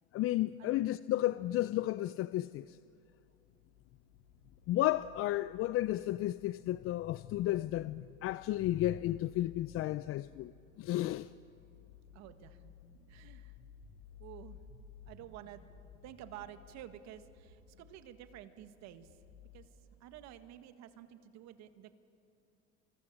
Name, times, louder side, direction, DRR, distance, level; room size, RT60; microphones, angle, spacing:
voice 1, 0.1-2.8 4.7-10.5 10.8-11.3, left 15 dB, 45° left, 0.5 m, -33 dB
sound 1, 2.5-19.7, left 7 dB, 90° left, 7.1 m, -58 dB
voice 2, 12.1-12.7 13.1-13.6 14.2-14.6 15.1-15.6 16.0-19.2 19.5-22.0, right 11 dB, 60° right, 1.8 m, -51 dB
29.0 x 25.0 x 7.4 m
supercardioid pair, 105°, 30 cm